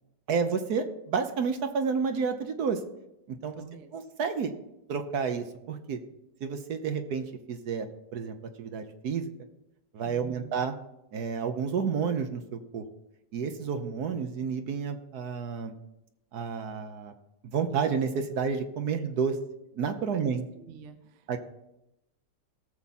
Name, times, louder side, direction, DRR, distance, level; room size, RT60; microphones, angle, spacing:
voice 1, 0.3-2.8 3.3-3.6 3.9-4.5 4.9-6.0 6.4-7.9 8.1-9.3 9.9-10.7 11.1-12.8 13.3-15.7 16.3-17.1 17.5-19.3 19.8-20.4 21.3-21.4, right 6 dB, 65° right, 7 dB, 1.4 m, -30 dB
voice 2, 3.5-3.9 10.0-10.6 18.9-19.1 20.1-21.4, right 7 dB, 50° right, 9 dB, 1.1 m, -48 dB
17.5 x 7.1 x 4.2 m, 0.87 s
omnidirectional pair, 1.9 m